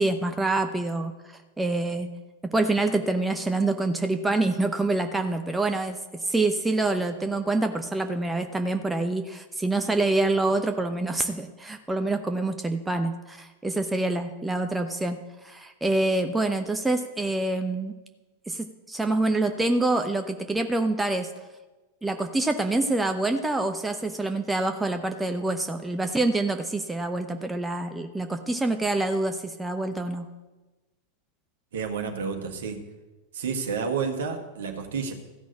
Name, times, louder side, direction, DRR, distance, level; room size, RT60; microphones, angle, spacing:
voice 1, 0.0-2.1 2.5-15.2 15.4-17.9 18.5-21.3 22.0-30.3, right 2 dB, 10° right, 6 dB, 0.7 m, -26 dB
voice 2, 31.7-32.8 33.3-35.1, right 5 dB, 60° right, 4 dB, 1.6 m, -30 dB
14.0 x 6.2 x 8.3 m, 1.2 s
figure-of-eight pair, 90°, 0 cm